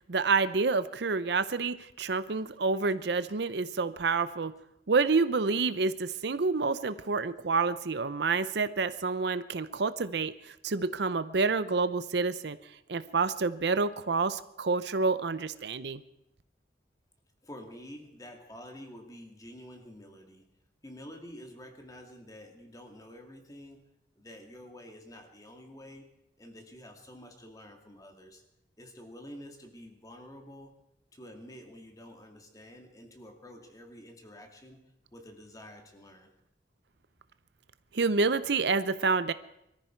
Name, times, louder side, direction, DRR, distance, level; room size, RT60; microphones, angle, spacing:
voice 1, 0.1-4.5 4.9-12.6 12.9-16.0 37.9-39.3, right 4 dB, 65° right, 14 dB, 0.7 m, -28 dB
voice 2, 17.4-20.4 20.8-23.8 24.2-26.1 26.4-28.4 28.8-30.7 31.1-34.8 35.1-36.3, equal, 20° left, 3 dB, 2.3 m, -49 dB
22.5 x 14.0 x 4.5 m, 0.81 s
head